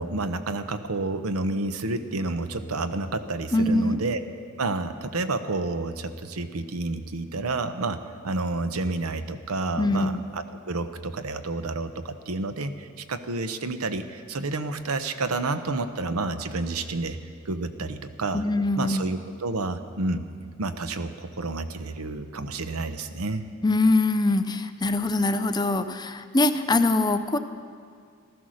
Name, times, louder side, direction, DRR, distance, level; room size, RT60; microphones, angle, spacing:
voice 1, 0.0-4.2 4.6-17.2 17.4-18.4 18.8-20.2 20.6-23.4, right 3 dB, 85° right, 10 dB, 0.9 m, -30 dB
voice 2, 3.5-4.0 9.8-10.2 18.3-19.1 23.6-27.4, left 2 dB, 20° left, 9 dB, 0.5 m, -23 dB
15.5 x 13.5 x 6.4 m, 2.1 s
head